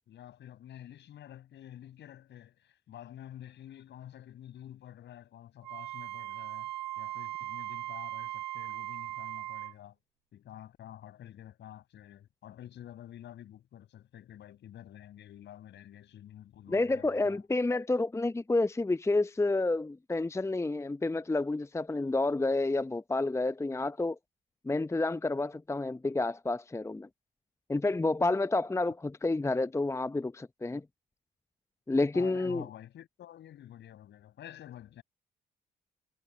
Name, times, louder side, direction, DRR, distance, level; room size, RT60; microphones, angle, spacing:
voice 1, 0.1-6.7 7.0-9.9 10.3-17.4 32.1-35.0, left 11 dB, 60° left, 6.7 m, -49 dB
Wind instrument woodwind instrument, 5.6-9.7, right 15 dB, 80° right, 4.4 m, -39 dB
voice 2, 16.7-24.2 24.6-27.1 27.7-30.8 31.9-32.6, left 2 dB, 15° left, 0.8 m, -29 dB
figure-of-eight pair, 45°, 21 cm